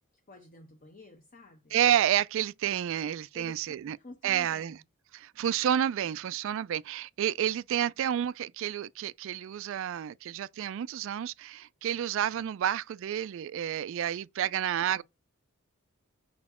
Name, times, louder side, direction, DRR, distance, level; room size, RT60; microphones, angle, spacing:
voice 1, 0.3-1.7 3.3-4.8 14.4-15.0, left 2 dB, 40° left, 0.9 m, -51 dB
voice 2, 1.7-4.0 4.2-4.7 5.1-15.0, right 10 dB, 65° right, 0.3 m, -30 dB
5.9 x 4.2 x 4.2 m
head